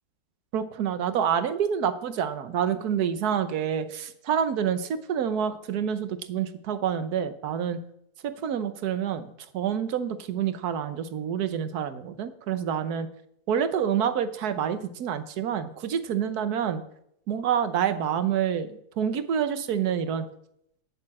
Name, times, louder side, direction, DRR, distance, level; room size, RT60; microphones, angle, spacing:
voice 1, 0.5-7.8 8.2-9.3 9.5-13.1 13.5-16.8 17.3-20.3, right 8 dB, 70° right, 12 dB, 1.4 m, -27 dB
9.8 x 8.4 x 7.5 m, 0.74 s
omnidirectional pair, 1.7 m